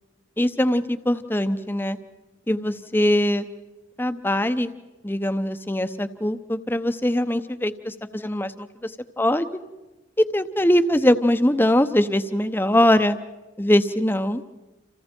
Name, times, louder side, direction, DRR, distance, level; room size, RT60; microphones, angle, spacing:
voice 1, 0.4-2.0 2.5-3.4 4.0-4.7 5.0-8.9 9.2-9.5 10.2-13.1 13.6-14.4, left 1 dB, 10° left, 10 dB, 0.8 m, -22 dB
30.0 x 28.0 x 4.5 m, 1.1 s
head